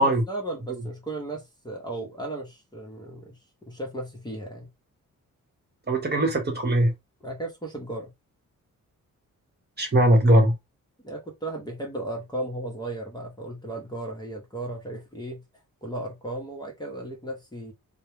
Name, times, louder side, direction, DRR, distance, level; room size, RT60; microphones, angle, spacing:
voice 1, 0.0-4.7 7.2-8.1 11.0-15.4 15.8-17.7, right 2 dB, 15° left, 0.9 m, -35 dB
voice 2, 5.9-6.9 9.8-10.5, right 1 dB, 30° right, 1.1 m, -20 dB
2.3 x 2.2 x 3.0 m
cardioid pair, 80°, 33 cm